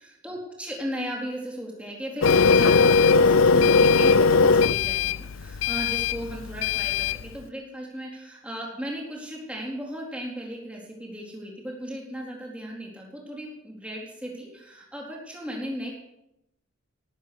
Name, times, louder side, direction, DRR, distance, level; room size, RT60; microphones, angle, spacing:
voice 1, 0.0-15.9, equal, 5° right, -2 dB, 3.9 m, -36 dB
Printer, 2.2-7.2, left 4 dB, 70° left, 0.5 m, -19 dB
19.0 x 8.9 x 6.7 m, 0.86 s
head